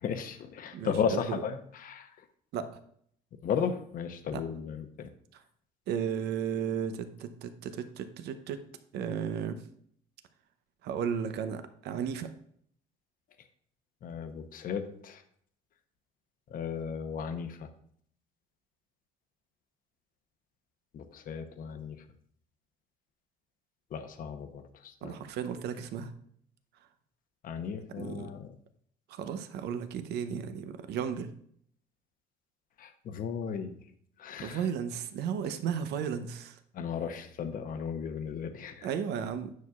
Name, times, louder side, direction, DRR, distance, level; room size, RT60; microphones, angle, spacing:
voice 1, 0.0-2.1 3.4-5.1 14.0-15.2 16.5-17.7 20.9-22.0 23.9-25.2 27.4-28.5 32.8-33.8 34.2-34.7 36.7-38.9, left 7 dB, 55° left, 8 dB, 0.8 m, -35 dB
voice 2, 0.7-1.3 2.5-2.8 4.3-4.4 5.3-5.4 5.9-8.6 8.9-9.6 10.8-12.3 25.0-26.1 28.0-28.3 29.1-31.3 34.4-36.6 38.8-39.5, right 7 dB, 80° right, 10 dB, 0.7 m, -34 dB
9.4 x 6.2 x 2.4 m, 0.64 s
cardioid pair, 110°, 17 cm